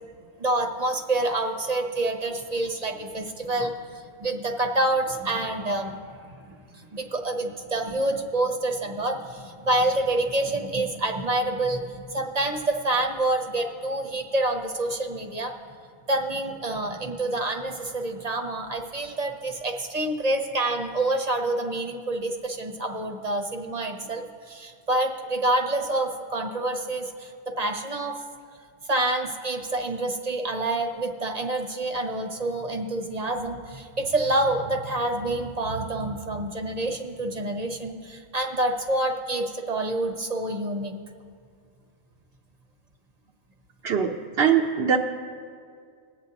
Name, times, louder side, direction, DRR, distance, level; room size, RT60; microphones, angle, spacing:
voice 1, 0.4-6.3 6.7-15.5 16.1-28.2 28.9-40.9, right 2 dB, 40° right, 3 dB, 0.9 m, -27 dB
voice 2, 44.4-45.0, right 7 dB, 70° right, 0 dB, 0.9 m, -21 dB
21.5 x 7.9 x 2.8 m, 2.2 s
omnidirectional pair, 1.1 m